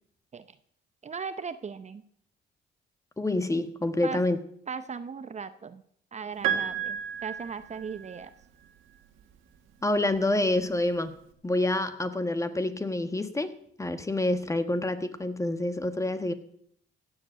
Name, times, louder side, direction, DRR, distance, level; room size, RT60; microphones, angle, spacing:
voice 1, 1.0-2.0 4.0-4.2 4.7-5.8 6.1-8.3, right 5 dB, 35° right, 12 dB, 0.7 m, -37 dB
voice 2, 3.2-4.4 9.8-11.1 11.4-13.5 13.8-16.3, left 2 dB, 15° left, 10 dB, 1.4 m, -27 dB
Piano, 6.4-8.4 9.7-9.8, right 9 dB, 90° right, 1.8 m, -32 dB
15.5 x 8.0 x 7.8 m, 0.68 s
cardioid pair, 90°, 20 cm